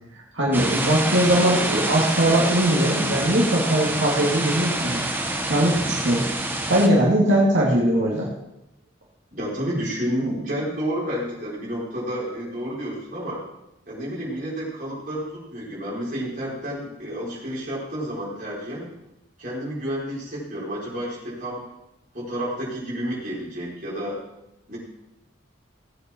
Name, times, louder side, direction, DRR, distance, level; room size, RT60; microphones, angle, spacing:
voice 1, 0.3-5.1 5.5-6.2 6.7-8.3, right 1 dB, 80° right, -5 dB, 2.4 m, -20 dB
sound 1, 0.5-6.9, right 2 dB, 10° right, 1.0 m, -26 dB
voice 2, 9.3-13.4 13.9-18.9 19.4-21.6 22.1-24.2 24.7-24.8, equal, 45° right, -6 dB, 4.7 m, -30 dB
17.0 x 8.0 x 4.6 m, 0.89 s
head